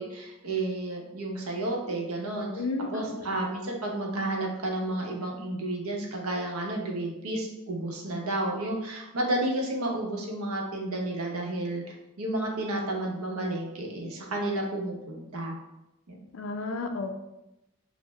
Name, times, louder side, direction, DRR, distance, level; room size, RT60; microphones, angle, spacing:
voice 1, 0.0-2.6 2.9-15.6 16.1-16.2, right 1 dB, 80° right, 0 dB, 0.8 m, -31 dB
voice 2, 2.5-3.1 16.3-17.1, left 3 dB, 65° left, 5 dB, 0.4 m, -32 dB
6.1 x 2.1 x 2.2 m, 0.92 s
head